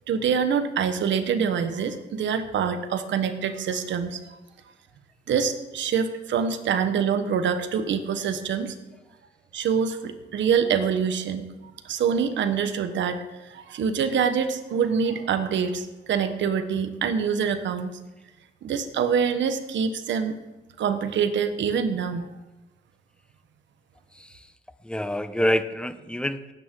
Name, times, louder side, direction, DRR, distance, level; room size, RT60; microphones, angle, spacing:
voice 1, 0.1-4.2 5.3-8.7 9.5-11.4 11.8-17.9 18.6-20.4 20.8-22.3, right 7 dB, 70° right, 9 dB, 1.2 m, -25 dB
voice 2, 24.1-24.5 24.8-26.5, left 1 dB, 5° left, 12 dB, 0.7 m, -27 dB
17.5 x 9.2 x 3.8 m, 1.1 s
cardioid pair, 90°, 20 cm